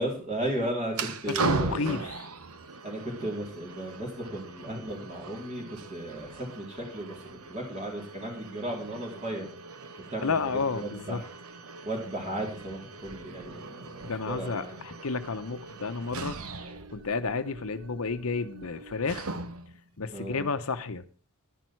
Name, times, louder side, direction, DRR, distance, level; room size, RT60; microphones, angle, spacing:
voice 1, 0.0-2.0 2.8-9.5 10.1-11.3 11.8-14.8 20.1-20.5, right 1 dB, 30° right, 3.9 m, -35 dB
sound 1, 0.9-19.8, right 3 dB, 75° right, 1.0 m, -39 dB
voice 2, 1.4-2.2 10.2-11.2 14.0-16.4 16.9-19.3 20.0-21.0, left 4 dB, 70° left, 0.8 m, -31 dB
11.0 x 10.5 x 4.6 m
head